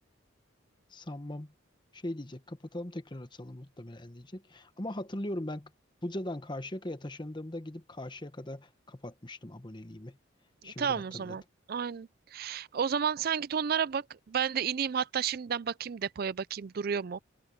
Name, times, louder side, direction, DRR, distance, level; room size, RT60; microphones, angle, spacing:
voice 1, 0.9-1.5 1.9-5.7 6.0-10.2 10.6-11.4, left 1 dB, 25° left, 1.1 m, -40 dB
voice 2, 10.6-11.4 11.7-17.2, right 7 dB, 50° right, 0.4 m, -32 dB
head